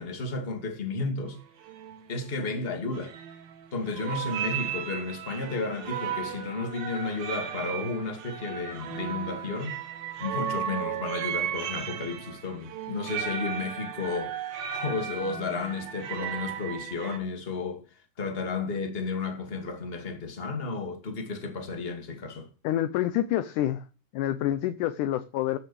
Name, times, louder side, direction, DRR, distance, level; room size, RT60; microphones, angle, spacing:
voice 1, 0.0-1.4 2.1-3.1 3.7-9.8 10.2-17.8 18.2-22.5, left 3 dB, 20° left, 1.9 m, -33 dB
sound 1, 1.3-1.4 1.6-2.0 2.9-3.7 3.9-17.2, right 8 dB, 80° right, 3.4 m, -35 dB
voice 2, 22.6-23.8 24.1-25.6, left 12 dB, 75° left, 1.9 m, -27 dB
14.5 x 6.5 x 7.0 m
omnidirectional pair, 4.2 m